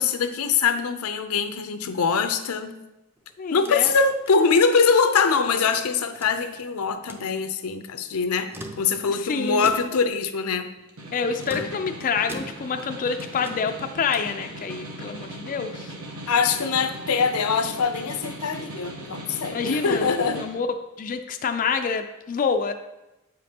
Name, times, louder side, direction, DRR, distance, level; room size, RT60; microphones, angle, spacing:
voice 1, 0.0-2.7 3.5-8.5 8.8-10.7 11.5-11.7 16.3-20.5, left 5 dB, 85° left, 8 dB, 0.5 m, -23 dB
sound 1, 3.2-5.3 5.7-6.7 7.0-7.3 8.3-9.2 9.6-10.1 11.4-12.9 13.2-14.4, right 1 dB, 10° right, 0.5 m, -42 dB
voice 2, 3.4-3.9 9.1-9.7 11.1-15.9 19.5-20.7 21.0-22.7, left 5 dB, 40° left, 6 dB, 0.3 m, -27 dB
Snare drum, 10.8-20.5, right 2 dB, 80° right, 1.1 m, -39 dB
8.3 x 5.1 x 2.8 m, 0.96 s
head